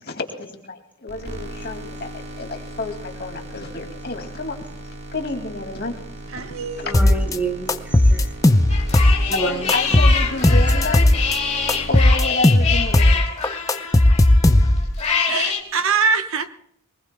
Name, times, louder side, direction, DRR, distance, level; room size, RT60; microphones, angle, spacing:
voice 1, 0.0-4.6 5.1-6.0 6.4-6.5 6.9-7.2 9.3-11.1 11.5-11.6 11.9-13.4, left 3 dB, 45° left, 3 dB, 2.3 m, -30 dB
sound 1, 1.1-12.7, right 1 dB, 45° right, 2.3 m, -37 dB
voice 2, 6.3-7.2 15.3-16.5, right 5 dB, 65° right, 8 dB, 1.0 m, -23 dB
voice 3, 6.8-8.3 9.3-9.6, right 3 dB, 5° right, 2 dB, 1.8 m, -28 dB
sound 2, 6.9-7.4 7.7-9.4 9.7-11.4 11.7-13.2 13.4-15.0, left 1 dB, 15° left, 0.6 m, -15 dB
sound 3, 8.7-15.6, left 6 dB, 30° left, 2.7 m, -25 dB
23.5 x 20.5 x 2.2 m, 0.73 s
head